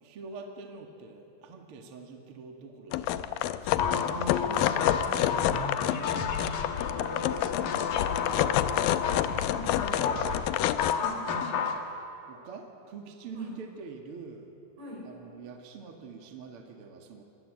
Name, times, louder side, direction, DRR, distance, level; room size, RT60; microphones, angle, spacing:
voice 1, 0.0-4.0 5.3-5.6 6.0-6.5 7.0-11.8 12.2-14.5 15.0-17.2, right 4 dB, 45° right, 3 dB, 2.2 m, -46 dB
sound 1, 2.9-10.9, left 12 dB, 80° left, 2.2 m, -28 dB
sound 2, 3.8-11.8, left 6 dB, 60° left, 3.0 m, -32 dB
voice 2, 4.0-5.8 9.5-10.0 13.3-13.6 14.8-15.1, left 1 dB, 80° right, -2 dB, 8.1 m, -41 dB
26.5 x 23.0 x 7.8 m, 2.7 s
omnidirectional pair, 4.9 m